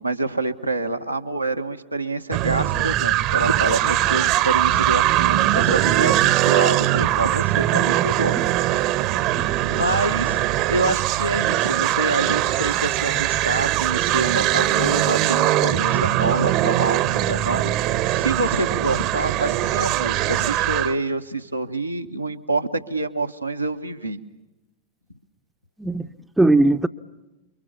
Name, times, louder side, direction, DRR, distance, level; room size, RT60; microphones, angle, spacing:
voice 1, 0.0-8.4 9.7-10.4 10.7-17.7 18.1-24.2 26.0-26.1, right 2 dB, 85° right, 1.3 m, -26 dB
sound 1, 2.3-20.9, right 14 dB, 40° right, 1.0 m, -21 dB
voice 2, 7.7-8.1 9.3-9.8 25.8-26.0 26.4-26.9, right 2 dB, 5° right, 0.8 m, -20 dB
29.0 x 24.0 x 7.2 m
figure-of-eight pair, 90°, 0 cm